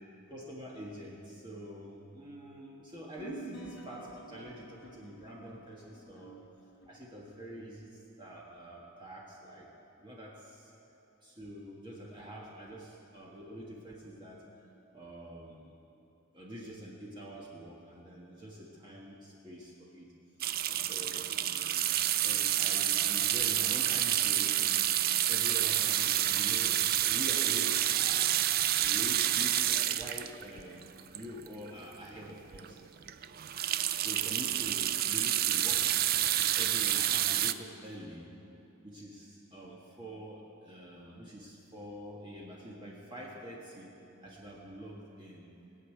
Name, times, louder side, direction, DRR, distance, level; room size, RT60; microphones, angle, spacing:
voice 1, 0.3-6.4 6.9-9.7 10.0-10.7 11.2-15.7 16.3-20.1 20.6-30.8 31.1-32.8 33.8-36.0 36.4-38.3 38.8-43.9 44.2-45.5, equal, 20° right, -4 dB, 1.4 m, -46 dB
sound 1, 3.2-7.7, right 3 dB, 55° left, 1.3 m, -51 dB
sound 2, 20.4-31.7 32.2-32.3 32.5-32.7 33.0-37.5, right 12 dB, 40° right, 0.3 m, -29 dB
19.0 x 6.5 x 9.0 m, 2.8 s
head